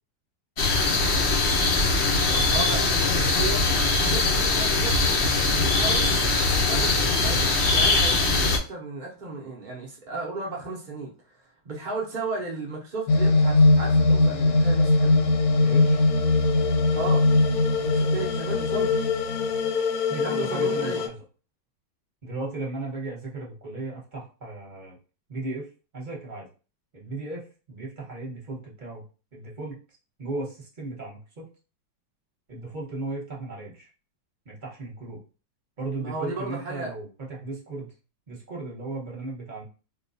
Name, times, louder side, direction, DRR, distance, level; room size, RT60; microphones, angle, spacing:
sound 1, 0.6-8.6, left 3 dB, 85° left, 0.5 m, -22 dB
voice 1, 2.3-3.6 3.9-5.0 5.5-6.2 6.5-11.1 11.6-15.2 16.9-17.3 17.8-19.0 20.1-21.0 36.0-36.9, right 3 dB, 85° right, -2 dB, 0.4 m, -34 dB
voice 2, 5.4-5.7 15.6-16.0 20.1-21.2 22.2-25.0 25.3-25.7 25.9-26.5 26.9-29.0 29.3-29.8 30.2-31.4 32.5-33.9 34.4-35.2 35.8-37.9 38.3-39.6, right 2 dB, 35° right, -3 dB, 0.9 m, -36 dB
sound 2, 13.1-21.1, left 3 dB, 70° left, 1.0 m, -21 dB
4.0 x 2.2 x 2.6 m, 0.35 s
omnidirectional pair, 2.0 m